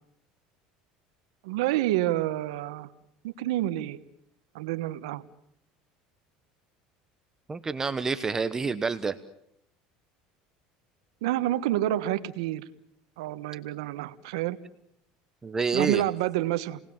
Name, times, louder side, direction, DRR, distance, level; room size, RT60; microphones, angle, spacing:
voice 1, 1.4-2.9 3.2-4.0 4.5-5.2 11.2-12.6 13.2-14.6 15.7-16.8, right 14 dB, 90° right, 12 dB, 1.3 m, -28 dB
voice 2, 7.5-9.1 15.4-16.0, right 4 dB, 20° right, 12 dB, 1.0 m, -28 dB
29.0 x 19.5 x 7.2 m, 0.73 s
supercardioid pair, 130°, 3 cm